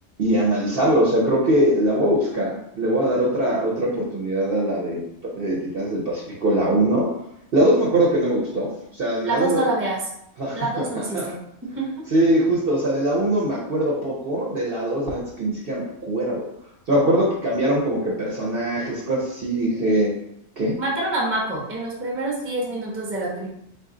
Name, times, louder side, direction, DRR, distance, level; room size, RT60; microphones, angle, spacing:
voice 1, 0.2-5.0 5.3-7.1 7.5-9.7 10.4-11.3 12.1-16.5 16.9-20.1 20.6-20.8, right 1 dB, 50° right, -5 dB, 0.7 m, -22 dB
voice 2, 9.2-10.0 10.5-11.4 11.8-11.9 20.8-23.5, right 2 dB, 15° right, -3 dB, 0.5 m, -26 dB
3.9 x 2.4 x 3.7 m, 0.78 s
omnidirectional pair, 1.6 m